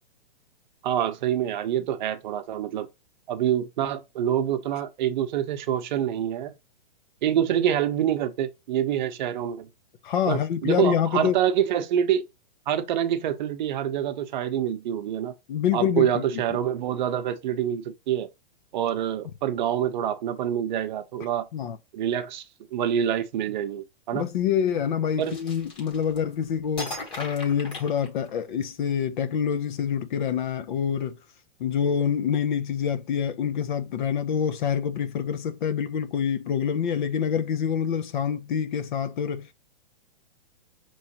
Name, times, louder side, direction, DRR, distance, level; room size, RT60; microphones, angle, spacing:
voice 1, 0.8-2.9 3.3-6.5 7.2-9.7 10.3-12.2 12.7-15.3 15.7-18.3 18.7-21.4 21.9-22.4 22.7-24.3 25.2-25.4, right 10 dB, 50° right, 0.8 m, -26 dB
voice 2, 10.0-11.4 15.5-16.4 21.5-21.8 24.1-31.2 31.6-39.5, left 8 dB, 55° left, 0.7 m, -26 dB
sound 1, 25.2-26.3 26.8-28.6, left 2 dB, 20° left, 1.1 m, -38 dB
5.5 x 3.1 x 2.9 m
hypercardioid pair, 145°, 29 cm